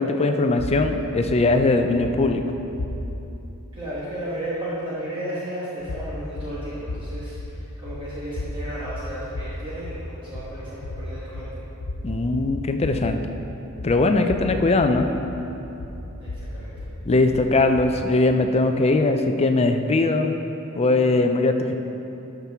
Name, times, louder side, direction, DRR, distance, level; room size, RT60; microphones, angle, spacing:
voice 1, 0.0-2.4 12.0-13.2 13.8-15.1 17.1-20.3 20.8-21.8, left 2 dB, 30° left, 6 dB, 0.4 m, -20 dB
sound 1, 0.6-3.4 5.8-18.1, left 1 dB, 85° left, 0.7 m, -34 dB
voice 2, 3.7-11.5 16.2-16.7, right 1 dB, 25° right, -10 dB, 1.3 m, -33 dB
12.5 x 6.0 x 3.5 m, 3.0 s
head